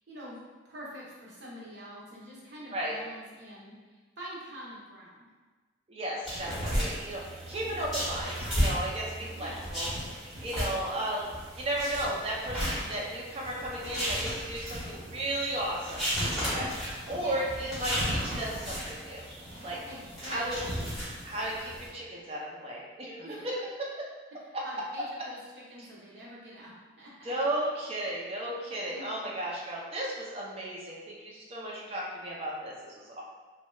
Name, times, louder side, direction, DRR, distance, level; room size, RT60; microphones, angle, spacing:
voice 1, 0.1-3.7 4.2-5.3 9.4-9.7 17.1-17.5 19.9-20.7 23.2-23.5 24.6-26.7 27.0-27.3 28.9-29.2, right 1 dB, 60° right, -6 dB, 0.8 m, -45 dB
voice 2, 5.9-9.9 10.4-11.2 11.6-16.7 17.1-19.3 19.6-19.8 20.2-20.6 21.2-24.1 24.5-24.6 27.2-33.2, right 1 dB, 30° right, -4 dB, 0.5 m, -34 dB
sound 1, 6.2-21.9, equal, ahead, 1.2 m, -34 dB
2.8 x 2.2 x 3.1 m, 1.4 s
head